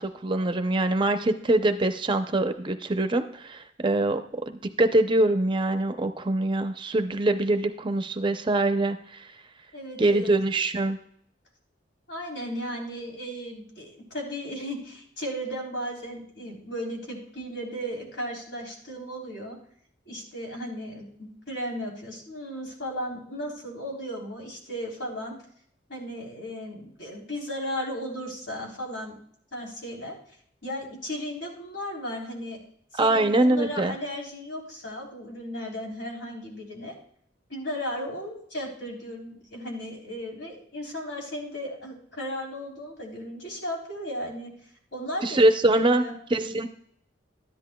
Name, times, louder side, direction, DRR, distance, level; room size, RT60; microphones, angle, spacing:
voice 1, 0.0-4.2 4.5-9.2 10.0-11.0 33.0-33.9 45.2-46.0 46.3-46.7, right 2 dB, 25° right, 8 dB, 0.5 m, -23 dB
voice 2, 9.7-10.3 12.1-19.6 20.0-25.3 25.9-29.2 29.5-30.2 30.6-32.6 32.9-36.9 37.5-44.5 44.9-46.1, equal, 70° left, -2 dB, 3.5 m, -35 dB
13.0 x 10.5 x 2.2 m, 0.65 s
head